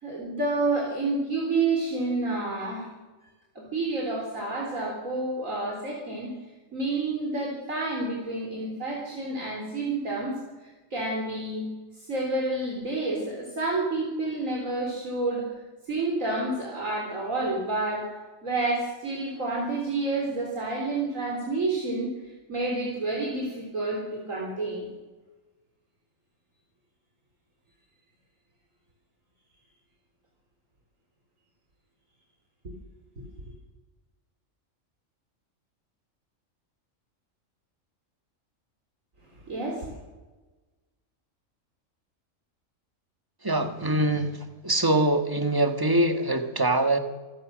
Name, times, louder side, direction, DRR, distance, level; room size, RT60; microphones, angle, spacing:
voice 1, 0.0-2.9 3.6-6.3 6.7-10.4 10.9-11.7 12.0-15.5 15.9-18.0 18.4-22.1 22.5-24.9 39.5-39.9, right 2 dB, 80° right, -2 dB, 4.2 m, -29 dB
voice 2, 43.4-47.0, right 1 dB, 15° right, 6 dB, 1.6 m, -24 dB
26.5 x 15.5 x 6.4 m, 1.2 s
omnidirectional pair, 1.4 m